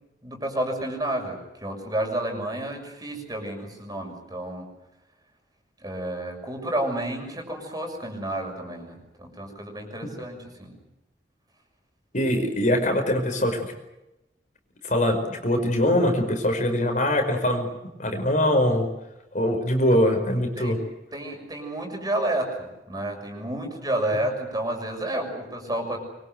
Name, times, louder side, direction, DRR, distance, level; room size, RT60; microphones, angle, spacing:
voice 1, 0.2-4.7 5.8-10.8 20.6-20.8 21.1-26.0, right 1 dB, 20° right, 3 dB, 6.5 m, -30 dB
voice 2, 12.1-13.7 14.8-17.7 18.0-18.9 19.3-20.8, left 1 dB, 45° left, 5 dB, 5.2 m, -22 dB
25.5 x 23.5 x 8.0 m, 0.94 s
head